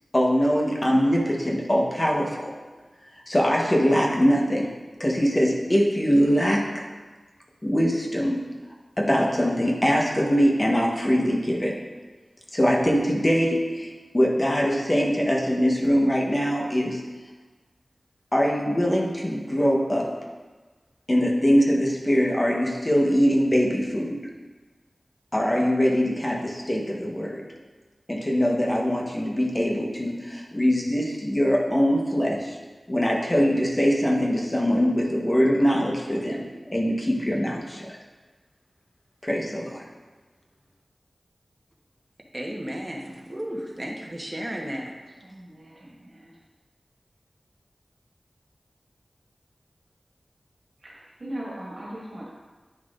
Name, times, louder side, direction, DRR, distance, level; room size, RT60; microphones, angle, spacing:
voice 1, 0.1-2.5 3.3-4.7 5.0-6.6 7.6-8.4 9.0-11.7 12.5-17.0 18.3-20.1 21.1-24.2 25.3-27.4 28.1-32.6 32.9-38.0 39.2-39.8, equal, 30° left, -2 dB, 1.1 m, -22 dB
voice 2, 42.3-44.9, equal, 25° right, -1 dB, 1.1 m, -33 dB
voice 3, 45.2-46.3 50.8-52.3, right 1 dB, 65° right, -4 dB, 1.7 m, -39 dB
9.4 x 5.8 x 2.5 m, 1.3 s
wide cardioid pair, 65°, 0 cm